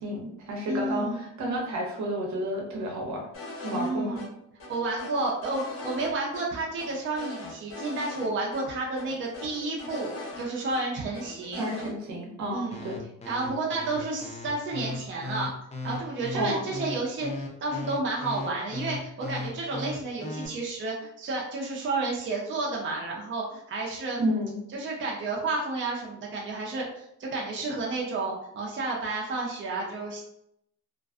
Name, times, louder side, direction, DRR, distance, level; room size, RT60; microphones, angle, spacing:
voice 1, 0.0-3.2 3.6-4.2 11.6-13.0 16.3-16.6 24.2-24.6, equal, 70° right, -1 dB, 0.9 m, -31 dB
voice 2, 0.7-1.2 3.7-4.3 4.7-11.6 12.5-12.8 13.3-15.5 15.8-24.2 24.7-30.2, right 3 dB, 40° right, -2 dB, 0.6 m, -31 dB
sound 1, 3.3-3.9 4.1-4.3 4.6-6.1 6.3-6.4 6.8-8.3 8.5-8.6 9.0-10.8 11.1-11.9, left 3 dB, 45° left, 0.9 m, -40 dB
sound 2, 12.7-20.5, left 2 dB, 20° left, 0.5 m, -36 dB
2.4 x 2.2 x 2.4 m, 0.78 s
cardioid pair, 90°, 30 cm